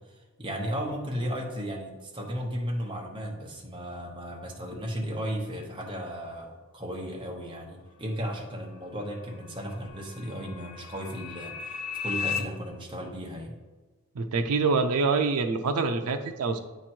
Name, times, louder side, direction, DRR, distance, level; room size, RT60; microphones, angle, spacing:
voice 1, 0.4-13.5, equal, 20° right, 0 dB, 1.0 m, -35 dB
sound 1, 8.1-12.4, left 7 dB, 80° left, 0.6 m, -37 dB
voice 2, 14.2-16.6, right 4 dB, 80° right, 6 dB, 0.5 m, -25 dB
8.8 x 3.0 x 4.4 m, 1.3 s
head